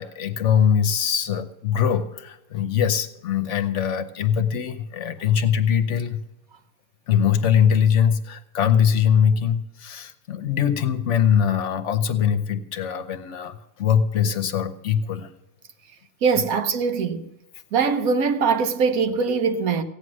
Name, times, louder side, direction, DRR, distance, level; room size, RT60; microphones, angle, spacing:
voice 1, 0.0-6.2 7.1-15.3 16.3-16.4, left 8 dB, 60° left, 1.0 m, -22 dB
voice 2, 16.2-17.3 17.7-19.8, right 5 dB, 85° right, 1.3 m, -22 dB
15.5 x 9.5 x 6.2 m
omnidirectional pair, 1.5 m